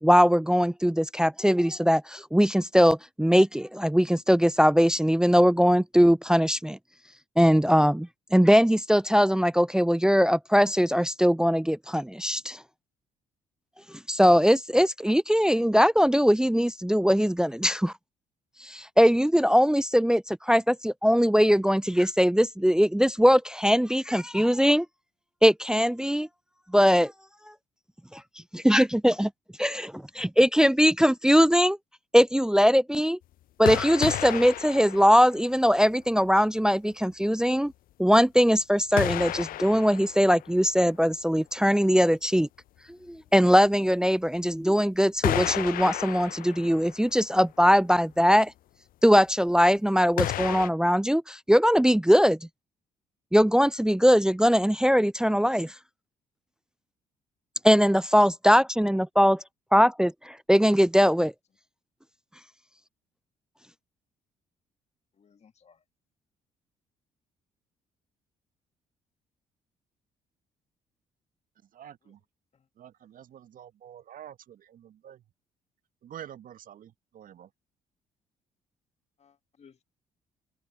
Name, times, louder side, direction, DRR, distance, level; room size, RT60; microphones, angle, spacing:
voice 1, 0.0-6.8 7.4-12.6 14.1-17.9 18.6-24.9 25.4-26.3 26.7-27.1 28.1-28.2 28.5-29.3 29.6-31.8 32.1-33.2 33.6-37.7 38.0-42.5 43.1-48.5 49.0-52.4 53.3-55.7 57.6-59.4 59.7-61.3, equal, 5° right, 0.5 m, -21 dB
sound 1, 33.7-35.8 36.3-36.4 39.0-40.9 43.7-43.8 45.2-47.2 47.5-47.6 50.2-50.7, left 14 dB, 55° left, 0.7 m, -32 dB
voice 2, 65.2-65.8 72.0-72.1 72.5-72.7 79.2-79.8, left 6 dB, 40° left, 2.4 m, -59 dB
voice 3, 71.7-72.2 72.8-75.2 76.0-77.5, right 10 dB, 55° right, 1.8 m, -47 dB
figure-of-eight pair, 45°, 17 cm